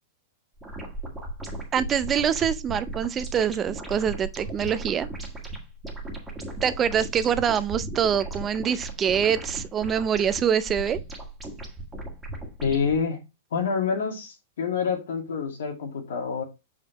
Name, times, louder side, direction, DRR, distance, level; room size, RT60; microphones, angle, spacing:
sound 1, 0.6-13.0, right 2 dB, 5° right, 1.7 m, -37 dB
voice 1, 1.7-5.1 6.6-11.0, right 8 dB, 20° right, 0.4 m, -25 dB
voice 2, 12.6-13.2 13.5-16.4, left 6 dB, 85° left, 2.3 m, -27 dB
6.6 x 5.2 x 3.0 m
supercardioid pair, 155°, 0 cm